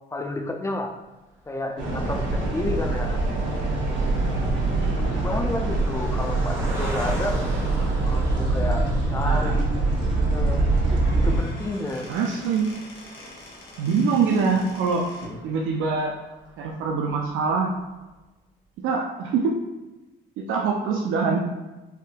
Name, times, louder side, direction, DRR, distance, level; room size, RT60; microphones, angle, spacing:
voice 1, 0.1-0.9 1.5-3.2 4.9-7.4 8.0-9.7 10.1-10.6 11.1-12.1 15.3-15.4, left 2 dB, 15° left, 4 dB, 0.4 m, -31 dB
Car passing by, 1.5-16.9 17.5-17.6 17.8-18.0, right 1 dB, 15° right, 0.9 m, -42 dB
sound 1, 1.8-11.4, right 2 dB, 70° right, 0.8 m, -24 dB
voice 2, 4.8-5.2 9.2-9.6 12.1-12.7 13.8-15.1 15.4-16.1 16.6-17.7 18.8-19.6 20.4-21.4, right 5 dB, 90° right, -1 dB, 0.4 m, -24 dB
Squeak / Wood, 11.0-15.4, left 1 dB, 90° left, 0.9 m, -44 dB
3.5 x 2.5 x 2.2 m, 1.1 s
cardioid pair, 90°, 20 cm